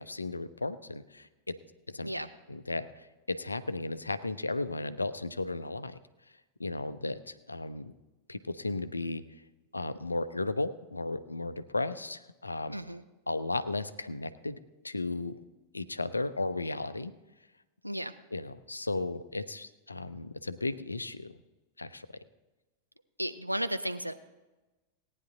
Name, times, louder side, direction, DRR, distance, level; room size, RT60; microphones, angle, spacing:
voice 1, 0.0-1.5 1.9-2.1 2.5-6.0 6.6-7.9 8.3-9.2 9.7-12.7 13.3-14.6 14.8-15.4 15.7-17.1 18.3-21.3 21.8-22.1, left 2 dB, 80° left, 13 dB, 0.6 m, -35 dB
voice 2, 12.7-13.0 17.8-18.1 23.2-24.1, equal, 90° right, 9 dB, 0.6 m, -34 dB
17.5 x 9.8 x 3.9 m, 1.1 s
figure-of-eight pair, 90°, 0 cm